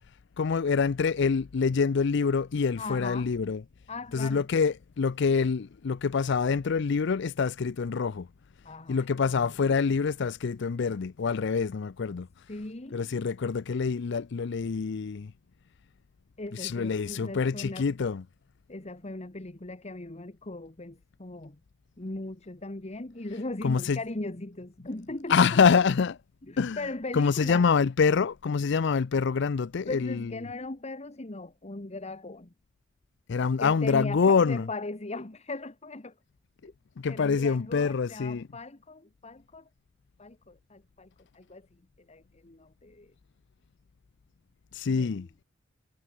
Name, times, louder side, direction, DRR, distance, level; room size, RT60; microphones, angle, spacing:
voice 1, 0.4-3.6 4.1-8.3 8.9-12.3 12.9-15.3 16.5-18.2 23.6-24.0 25.3-26.2 26.6-30.5 33.3-34.7 37.0-38.5 44.7-45.3, left 5 dB, 65° left, 0.5 m, -26 dB
voice 2, 2.8-3.3 3.9-4.5 8.6-9.9 12.5-13.1 16.4-17.9 18.7-21.6 22.0-25.8 26.4-27.7 29.9-32.5 33.6-36.2 36.6-36.7 37.1-39.7 40.2-43.1 44.9-45.3, left 2 dB, 35° left, 1.4 m, -39 dB
head